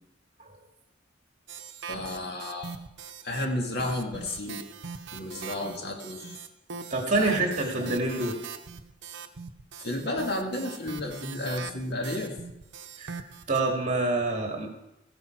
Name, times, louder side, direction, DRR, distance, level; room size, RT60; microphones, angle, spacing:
sound 1, 1.5-3.5 3.8-13.6, right 6 dB, 65° right, 0.8 m, -42 dB
voice 1, 1.9-2.8 3.2-4.6 5.1-6.4 7.2-7.7 9.8-12.3, left 1 dB, 60° left, 1 dB, 2.2 m, -32 dB
voice 2, 6.9-8.4 13.0-14.7, right 2 dB, 40° right, 2 dB, 2.3 m, -27 dB
15.0 x 10.0 x 4.6 m, 0.87 s
head